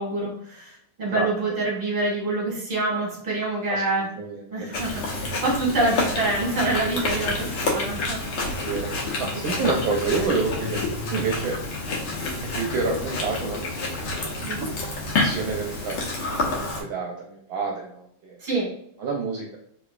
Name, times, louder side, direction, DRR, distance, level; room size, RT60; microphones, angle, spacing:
voice 1, 0.0-4.1 4.5-8.6 9.1-9.3 9.5-9.7 14.4-14.7 18.4-18.7, right 2 dB, 20° right, -5 dB, 1.4 m, -26 dB
voice 2, 3.7-4.7 8.4-8.9 9.2-10.8 11.1-11.6 12.5-14.8 15.1-18.4 19.0-19.6, right 4 dB, 75° right, 0 dB, 1.3 m, -29 dB
Chewing mastication, 4.7-16.8, left 2 dB, 75° left, 1.6 m, -28 dB
3.5 x 3.0 x 2.4 m, 0.70 s
omnidirectional pair, 2.3 m